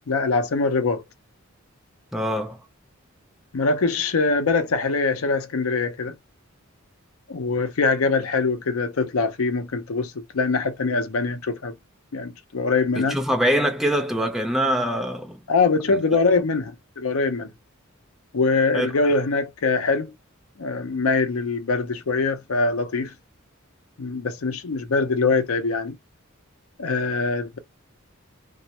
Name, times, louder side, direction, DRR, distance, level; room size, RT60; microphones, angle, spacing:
voice 1, 0.1-1.0 3.5-6.2 7.3-11.7 12.1-13.2 15.5-17.5 18.3-20.1 20.6-23.1 24.0-26.0 26.8-27.6, left 4 dB, 90° left, 0.6 m, -23 dB
voice 2, 2.1-2.6 12.9-15.4 15.9-16.0 18.7-18.9, equal, ahead, 0.5 m, -24 dB
2.4 x 2.1 x 2.8 m
head